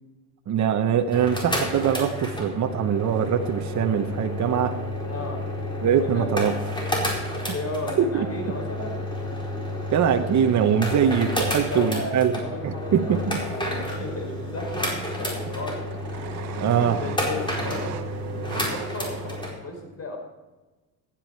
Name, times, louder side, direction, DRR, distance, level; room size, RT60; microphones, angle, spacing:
voice 1, 0.5-4.8 5.8-6.5 8.0-8.3 9.9-12.3 12.6-13.4 16.6-17.0, right 8 dB, 45° right, 7 dB, 0.9 m, -22 dB
sound 1, 1.0-19.5, left 1 dB, 10° left, 4.3 m, -30 dB
voice 2, 5.1-5.4 5.9-6.6 7.3-9.0 11.6-16.0 17.0-20.2, left 2 dB, 40° left, 2 dB, 5.1 m, -35 dB
sound 2, 9.0-9.1 10.6-11.3 13.6-13.7 13.9-14.4 14.7-19.5, right 9 dB, 80° right, 1.1 m, -39 dB
15.0 x 10.0 x 4.5 m, 1.1 s
cardioid pair, 100°, 39 cm